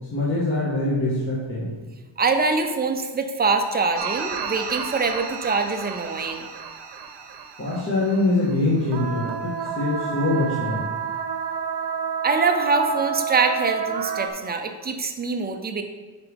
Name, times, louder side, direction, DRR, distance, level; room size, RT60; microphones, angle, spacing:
voice 1, 0.1-1.7 7.6-10.9, left 2 dB, 30° left, -8 dB, 1.7 m, -24 dB
voice 2, 2.2-6.5 12.2-15.8, right 4 dB, 20° right, 5 dB, 0.7 m, -24 dB
sound 1, 4.0-8.6 8.8-14.3, right 7 dB, 60° right, 0.9 m, -30 dB
9.3 x 4.9 x 3.6 m, 1.3 s
cardioid pair, 130°, 44 cm